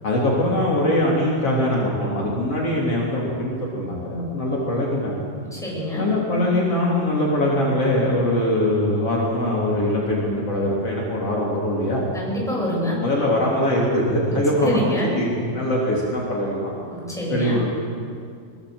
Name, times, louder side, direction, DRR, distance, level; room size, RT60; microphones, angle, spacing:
voice 1, 0.0-5.2 6.0-12.0 12.8-16.7 17.3-17.7, left 1 dB, 50° left, -4 dB, 4.3 m, -22 dB
voice 2, 5.5-6.0 12.1-13.0 14.6-15.1 16.9-17.5, equal, ahead, -4 dB, 7.8 m, -26 dB
24.0 x 22.0 x 7.9 m, 2.3 s
omnidirectional pair, 3.4 m